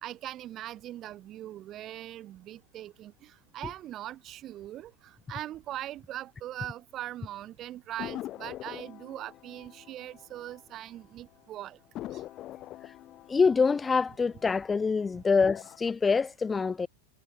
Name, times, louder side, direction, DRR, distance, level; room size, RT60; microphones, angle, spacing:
voice 1, 0.0-11.8 12.1-12.2, right 13 dB, 30° right, 1.4 m, -41 dB
sound 1, 8.0-11.0 11.3-11.4 11.9-14.9 15.3-15.9, left 14 dB, 35° left, 3.2 m, -44 dB
voice 2, 13.3-16.9, left 5 dB, 15° left, 0.5 m, -25 dB
figure-of-eight pair, 95°, 0 cm